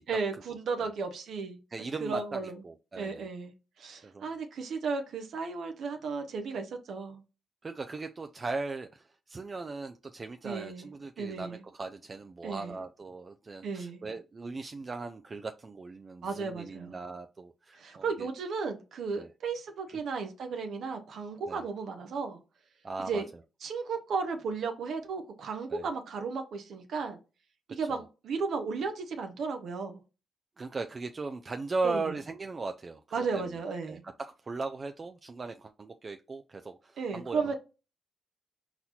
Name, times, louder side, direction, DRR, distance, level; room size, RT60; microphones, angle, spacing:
voice 1, 0.1-1.6 2.0-2.6 2.9-7.2 10.4-10.9 11.2-11.6 12.4-12.8 13.6-14.0 16.2-17.0 17.8-22.4 23.1-23.3 23.6-27.2 27.7-30.0 31.8-32.1 33.1-34.0 37.0-37.6, right 4 dB, 70° right, 5 dB, 0.7 m, -34 dB
voice 2, 1.7-3.3 4.0-4.3 7.6-18.3 19.2-19.3 19.9-20.0 21.5-21.6 22.8-23.2 25.7-25.9 27.9-28.0 30.6-33.6 33.9-37.6, right 3 dB, 40° right, 7 dB, 0.3 m, -38 dB
4.2 x 4.0 x 2.8 m, 0.31 s
cardioid pair, 65°, 0 cm